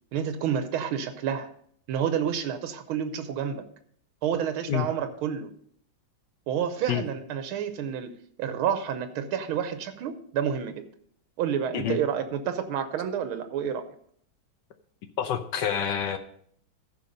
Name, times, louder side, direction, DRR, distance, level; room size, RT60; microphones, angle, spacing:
voice 1, 0.1-1.5 1.9-3.6 4.2-5.5 6.5-8.1 8.4-10.9 11.4-13.9, right 8 dB, 90° right, 9 dB, 1.6 m, -29 dB
voice 2, 15.2-16.2, left 9 dB, 70° left, 8 dB, 1.2 m, -27 dB
14.5 x 5.4 x 5.2 m, 0.65 s
omnidirectional pair, 2.2 m